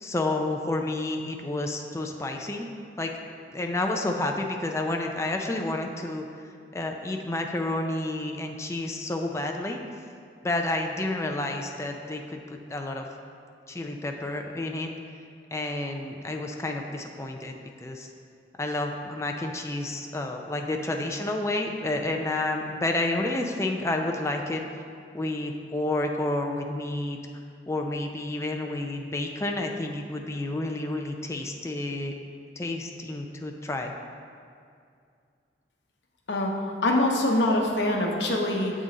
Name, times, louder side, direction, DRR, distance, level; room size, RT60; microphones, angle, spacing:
voice 1, 0.0-2.7 3.0-3.1 3.5-6.2 6.7-9.8 10.4-12.4 12.7-13.0 13.7-14.9 15.5-18.1 18.6-24.6 25.1-27.2 27.7-32.1 32.6-33.9, left 2 dB, 15° left, 3 dB, 0.4 m, -30 dB
voice 2, 36.8-38.7, left 1 dB, 75° left, 0 dB, 0.8 m, -24 dB
7.8 x 3.7 x 4.0 m, 2.3 s
head